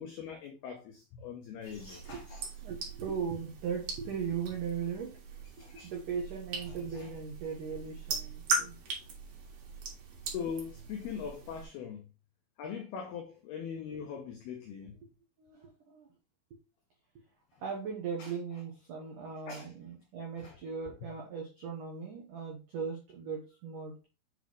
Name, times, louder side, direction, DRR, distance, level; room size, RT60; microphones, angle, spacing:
voice 1, 0.0-2.5 5.6-5.9 6.7-7.1 10.2-12.1 12.6-15.0 18.2-18.3 19.0-19.1 19.5-19.7 20.4-20.6, left 7 dB, 90° left, 2.2 m, -41 dB
sound 1, 1.6-11.7, right 3 dB, 60° right, 2.7 m, -40 dB
voice 2, 2.6-5.4 5.8-8.7 15.4-16.1 17.6-24.1, right 6 dB, 90° right, 1.8 m, -38 dB
7.8 x 4.2 x 3.1 m
omnidirectional pair, 5.6 m